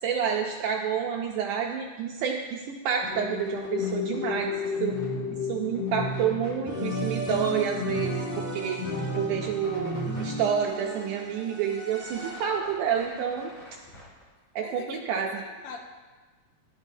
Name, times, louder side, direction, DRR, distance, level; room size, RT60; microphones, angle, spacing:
voice 1, 0.0-4.9 5.5-8.8 9.1-13.5 14.5-15.3, right 7 dB, 80° right, 1 dB, 1.8 m, -29 dB
sound 1, 3.0-10.4, left 4 dB, 55° left, 2.1 m, -33 dB
Creaking leather, 3.2-5.2 5.5-6.6 7.2-7.7 8.1-8.2 8.4-10.3 10.6-11.5 11.8-14.2, left 1 dB, 40° left, 3.0 m, -49 dB
sound 2, 6.7-12.7, right 1 dB, 5° right, 1.9 m, -36 dB
voice 2, 14.6-15.8, left 5 dB, 75° left, 2 dB, 2.7 m, -43 dB
14.0 x 11.5 x 2.7 m, 1.4 s
omnidirectional pair, 4.2 m